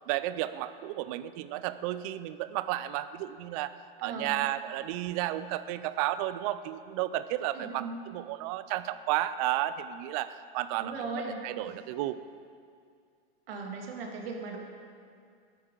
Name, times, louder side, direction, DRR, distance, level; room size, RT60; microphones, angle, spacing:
voice 1, 0.1-3.7 4.0-10.9 11.4-12.2, right 14 dB, 40° right, 14 dB, 0.4 m, -32 dB
voice 2, 4.0-4.4 7.5-8.0 10.8-11.7 13.5-14.6, right 3 dB, 75° right, 1 dB, 2.0 m, -38 dB
12.5 x 8.7 x 3.8 m, 2.3 s
supercardioid pair, 145°, 29 cm